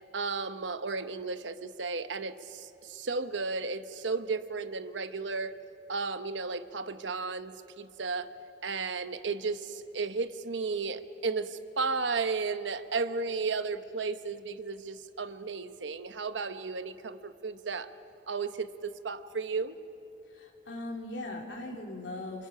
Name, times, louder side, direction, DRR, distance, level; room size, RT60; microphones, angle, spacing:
voice 1, 0.1-5.5 5.9-8.3 8.6-17.9 18.3-19.8, right 4 dB, 85° right, 11 dB, 0.9 m, -34 dB
voice 2, 20.3-22.5, left 2 dB, 90° left, 0 dB, 3.1 m, -39 dB
27.5 x 26.5 x 5.6 m, 2.8 s
head